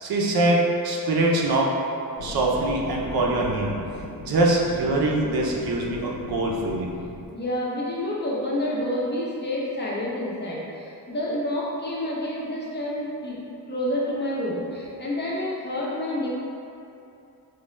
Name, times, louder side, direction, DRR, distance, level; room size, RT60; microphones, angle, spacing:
voice 1, 0.0-1.7 2.2-3.7 4.2-6.9, right 2 dB, 70° right, -2 dB, 0.6 m, -23 dB
sound 1, 2.2-7.3, left 2 dB, 80° left, 0.6 m, -38 dB
voice 2, 7.3-13.4 13.7-16.3, left 1 dB, 30° left, -6 dB, 0.6 m, -28 dB
4.8 x 2.1 x 3.0 m, 2.7 s
wide cardioid pair, 150°, 37 cm